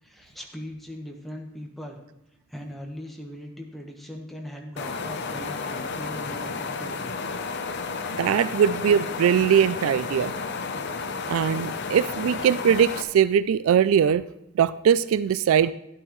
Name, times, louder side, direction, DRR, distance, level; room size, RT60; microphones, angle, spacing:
voice 1, 0.0-2.0 2.5-7.2, equal, ahead, 0 dB, 1.2 m, -40 dB
sound 1, 4.8-13.0, left 4 dB, 55° left, 0.7 m, -32 dB
voice 2, 8.1-10.3 11.3-14.2 14.6-15.7, right 8 dB, 75° right, 16 dB, 0.3 m, -21 dB
12.0 x 10.5 x 3.1 m, 0.84 s
head